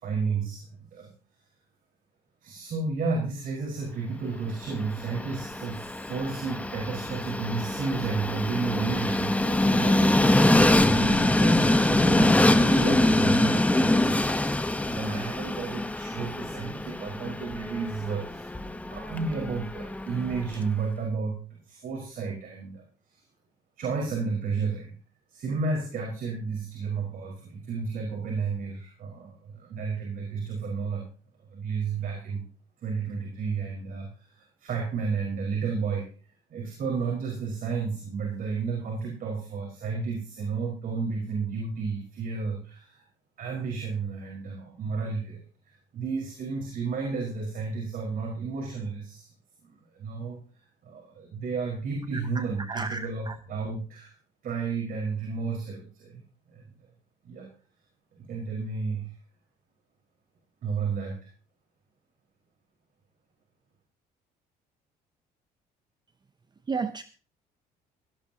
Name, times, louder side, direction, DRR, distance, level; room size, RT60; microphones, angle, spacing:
voice 1, 0.0-1.1 2.4-14.2 14.8-22.8 23.1-23.2 23.8-24.9 25.3-31.1 31.5-32.4 32.8-36.1 36.5-43.0 43.4-49.3 49.6-50.4 50.8-54.1 54.4-56.6 57.2-57.5 58.1-59.1 60.6-61.2, right 4 dB, 55° right, 5.0 m, -32 dB
Train, 4.6-20.7, left 1 dB, 10° left, 1.0 m, -24 dB
voice 2, 52.1-53.4 66.7-67.0, right 4 dB, 25° right, 0.7 m, -33 dB
17.0 x 16.5 x 2.9 m
cardioid pair, 110°, 17 cm